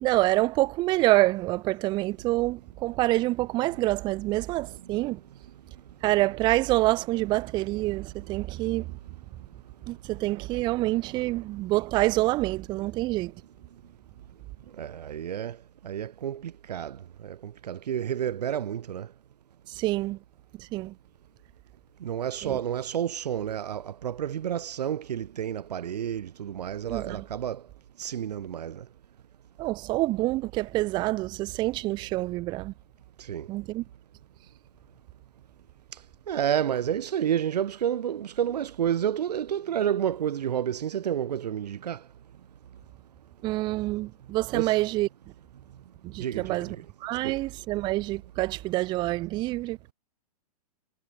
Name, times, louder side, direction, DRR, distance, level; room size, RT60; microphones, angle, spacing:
voice 1, 0.0-5.2 6.0-8.9 9.9-13.3 19.7-20.2 20.6-20.9 22.4-22.6 26.8-27.2 29.6-32.7 33.5-33.8 43.4-45.1 46.0-46.8 47.0-49.9, right 19 dB, 20° right, 0.7 m, -27 dB
voice 2, 14.8-15.6 15.8-17.0 17.2-19.1 22.0-27.6 28.0-28.8 33.3-33.5 36.3-42.0 44.5-44.7 46.2-46.8 47.2-47.3, right 9 dB, 90° right, 1.6 m, -30 dB
hypercardioid pair, 155°, 20 cm